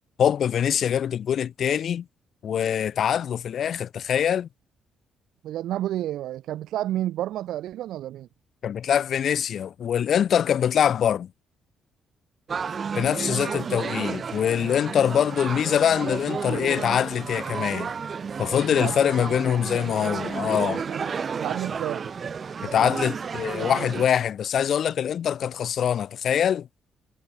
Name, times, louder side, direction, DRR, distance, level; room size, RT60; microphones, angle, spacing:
voice 1, 0.2-2.1 2.4-4.5 8.6-11.3 12.9-17.9 18.4-20.8 22.6-26.7, left 9 dB, 60° left, 1.9 m, -24 dB
voice 2, 5.4-8.3 13.3-13.5 18.8-19.0 20.9-22.1, right 13 dB, 80° right, 4.0 m, -30 dB
sound 1, 12.5-24.1, right 6 dB, 45° right, 2.6 m, -32 dB
cardioid pair, 90°, 0 cm